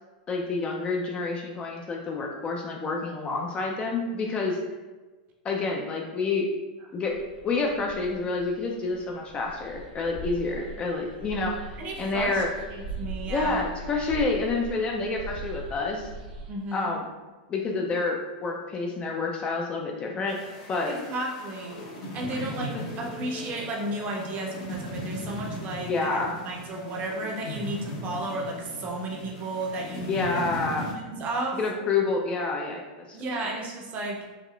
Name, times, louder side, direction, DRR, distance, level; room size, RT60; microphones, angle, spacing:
voice 1, 0.3-4.6 5.4-6.5 6.9-7.2 7.4-11.7 12.0-12.5 13.3-16.1 16.7-17.1 17.5-20.4 20.7-21.0 22.3-22.8 25.9-26.3 30.0-30.9 31.6-33.2, left 3 dB, 25° left, 1 dB, 0.3 m, -28 dB
sound 1, 7.1-16.5, right 2 dB, 80° right, 0.5 m, -40 dB
voice 2, 11.8-12.4 12.7-13.6 16.5-16.9 20.9-21.8 22.1-22.7 23.0-26.2 26.5-30.3 30.6-30.7 31.0-31.6 33.1-34.2, right 2 dB, 35° right, 0 dB, 0.6 m, -33 dB
sound 2, 20.3-30.9, equal, 55° left, 0.7 m, -38 dB
3.5 x 2.3 x 2.3 m, 1.3 s
supercardioid pair, 135°, 5 cm